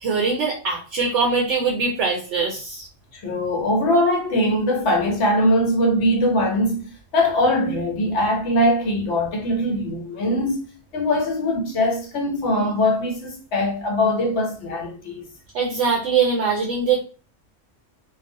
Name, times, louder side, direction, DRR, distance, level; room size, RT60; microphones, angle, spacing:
voice 1, 0.0-2.8 15.5-17.0, right 5 dB, 75° right, 0.9 m, -22 dB
voice 2, 3.1-6.8 7.1-10.6 10.9-15.2, left 1 dB, 70° left, 1.0 m, -21 dB
2.3 x 2.0 x 2.6 m
omnidirectional pair, 1.3 m